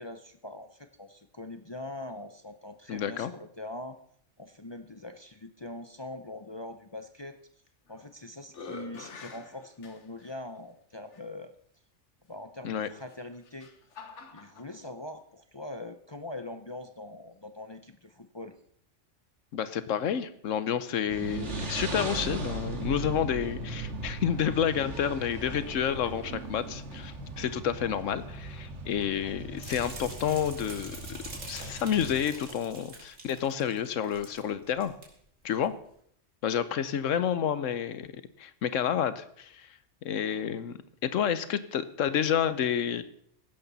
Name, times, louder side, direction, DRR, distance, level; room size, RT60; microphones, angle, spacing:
voice 1, 0.0-4.0 4.4-7.4 7.9-11.5 12.3-13.7 14.3-18.6, left 1 dB, 30° left, 8 dB, 0.5 m, -42 dB
voice 2, 2.9-3.3 12.6-12.9 19.5-31.2 31.5-34.9 35.4-35.7 36.4-39.7 40.0-43.0, left 8 dB, 85° left, 13 dB, 1.2 m, -30 dB
sound 1, 7.7-8.1 8.5-10.4 11.1-11.2 13.0-14.7, left 4 dB, 70° left, 1.5 m, -46 dB
sound 2, 21.1-32.2, right 3 dB, 70° right, 2.1 m, -38 dB
sound 3, 29.6-34.4 34.7-35.0 35.5-35.6, right 2 dB, 85° right, 3.3 m, -45 dB
15.5 x 11.5 x 4.1 m, 0.65 s
omnidirectional pair, 1.3 m